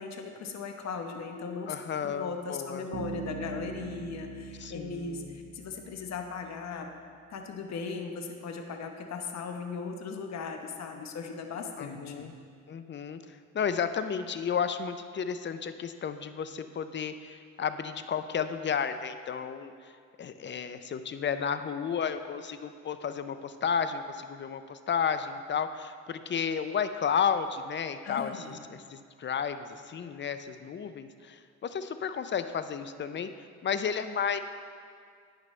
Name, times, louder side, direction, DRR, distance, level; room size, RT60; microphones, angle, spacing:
voice 1, 0.0-6.9 7.3-12.4 28.0-28.6, left 5 dB, 60° left, 4 dB, 1.0 m, -38 dB
voice 2, 1.7-2.8 4.6-5.3 11.8-12.3 12.7-13.2 13.5-19.7 20.2-33.3 33.6-34.4, left 7 dB, 40° left, 10 dB, 0.6 m, -32 dB
Bass guitar, 2.9-6.7, right 5 dB, 60° right, 0.7 m, -42 dB
11.5 x 9.0 x 3.2 m, 2.1 s
cardioid pair, 90°, 30 cm